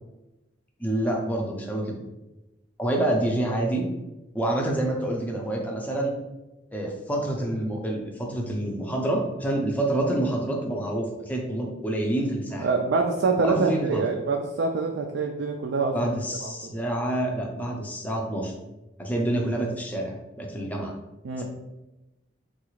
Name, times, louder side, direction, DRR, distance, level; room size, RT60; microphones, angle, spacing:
voice 1, 0.8-1.9 2.8-3.9 4.3-6.1 6.7-12.7 13.4-14.0 15.9-18.5 19.0-20.9 21.4-21.5, right 1 dB, 10° left, -1 dB, 0.5 m, -27 dB
voice 2, 12.6-16.1 16.4-16.5 21.2-21.4, right 4 dB, 60° right, 1 dB, 0.3 m, -25 dB
3.5 x 2.4 x 3.0 m, 1.0 s
head